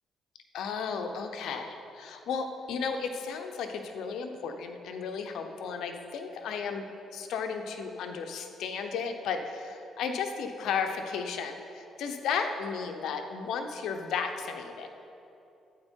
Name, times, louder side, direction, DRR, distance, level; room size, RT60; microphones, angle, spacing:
voice 1, 0.5-6.8 7.1-14.9, left 6 dB, 80° left, 5 dB, 0.9 m, -34 dB
11.5 x 8.8 x 4.6 m, 2.9 s
cardioid pair, 90°, 0 cm